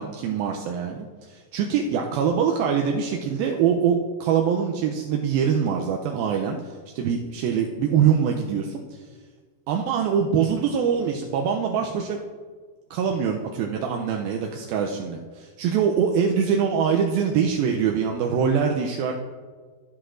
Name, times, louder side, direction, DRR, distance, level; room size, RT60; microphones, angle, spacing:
voice 1, 0.0-9.0 9.7-12.2 12.9-19.1, right 7 dB, 80° right, 1 dB, 2.2 m, -24 dB
15.0 x 7.9 x 2.5 m, 1.5 s
omnidirectional pair, 4.6 m